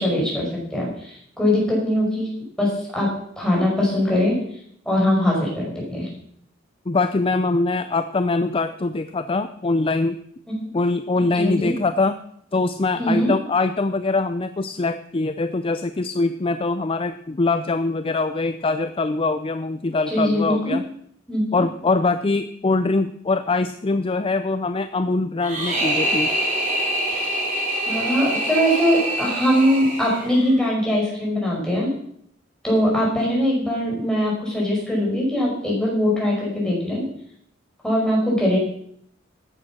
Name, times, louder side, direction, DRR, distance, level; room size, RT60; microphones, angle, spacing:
voice 1, 0.0-2.3 2.6-3.1 3.4-4.3 4.9-6.1 10.6-10.7 11.3-11.7 12.9-13.3 20.1-20.8 21.3-21.6 27.1-27.2 27.9-31.9 32.6-37.0 37.8-38.6, equal, 5° left, -4 dB, 5.7 m, -21 dB
voice 2, 6.9-10.2 10.7-12.2 12.5-20.8 21.5-26.3, left 3 dB, 30° left, 11 dB, 0.5 m, -23 dB
sound 1, 25.4-30.5, right 1 dB, 40° right, 4.1 m, -25 dB
13.5 x 9.2 x 6.1 m, 0.68 s
head